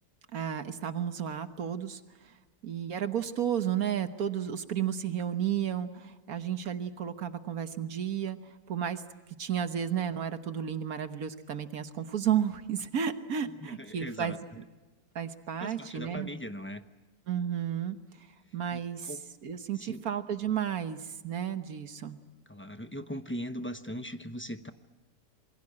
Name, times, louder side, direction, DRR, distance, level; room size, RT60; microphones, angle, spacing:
voice 1, 0.3-2.3 2.6-8.4 8.7-9.0 9.4-14.6 15.1-16.3 17.3-18.3 18.5-19.1 19.4-22.2, right 9 dB, 70° right, 9 dB, 1.6 m, -32 dB
voice 2, 13.6-14.4 15.6-16.8 18.7-19.2 19.7-20.0 22.5-24.7, equal, 10° left, 9 dB, 0.7 m, -39 dB
27.5 x 22.0 x 8.7 m, 1.2 s
omnidirectional pair, 1.6 m